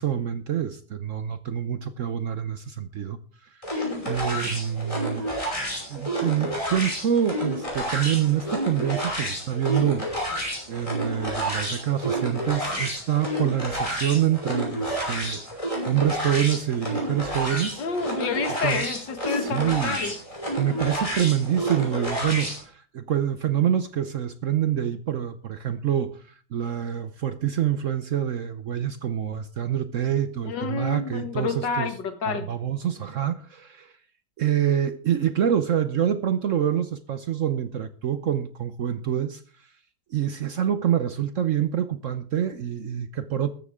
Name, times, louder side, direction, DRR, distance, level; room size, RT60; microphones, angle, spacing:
voice 1, 0.0-3.6 4.0-5.3 5.9-10.4 10.7-17.8 18.6-18.9 19.3-20.0 20.6-31.9 32.3-33.9 34.4-39.4 40.1-43.5, right 10 dB, 60° right, 0.9 m, -26 dB
sound 1, 3.6-22.6, equal, 15° left, 5.8 m, -30 dB
voice 2, 17.8-20.2 30.4-32.5, left 5 dB, 80° left, 2.2 m, -29 dB
14.0 x 13.5 x 3.6 m
omnidirectional pair, 1.9 m